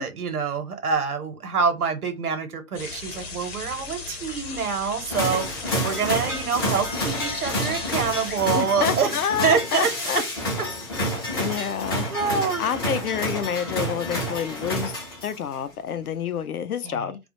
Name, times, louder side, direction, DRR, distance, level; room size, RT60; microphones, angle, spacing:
voice 1, 0.0-10.2 11.3-11.7 12.1-12.7 16.8-17.1, right 6 dB, 85° right, 0.9 m, -26 dB
sound 1, 2.7-8.4, left 4 dB, 40° left, 0.9 m, -36 dB
sound 2, 5.1-15.5, equal, 20° left, 0.4 m, -29 dB
voice 2, 8.5-10.2 11.3-12.1 12.6-14.9 15.2-17.2, left 8 dB, 80° left, 0.6 m, -28 dB
2.3 x 2.1 x 2.9 m
hypercardioid pair, 135°, 43 cm